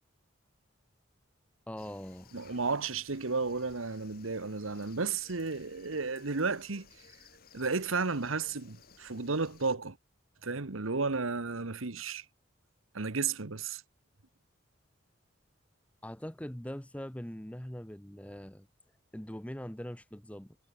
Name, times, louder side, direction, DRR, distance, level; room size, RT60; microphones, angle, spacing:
voice 1, 1.7-2.3 16.0-18.7 19.1-20.6, equal, 5° left, 0.8 m, -42 dB
sound 1, 1.8-9.8, left 5 dB, 45° left, 3.2 m, -59 dB
voice 2, 2.3-6.9 7.5-10.0 10.4-12.2 12.9-13.8, right 4 dB, 85° right, 1.3 m, -33 dB
head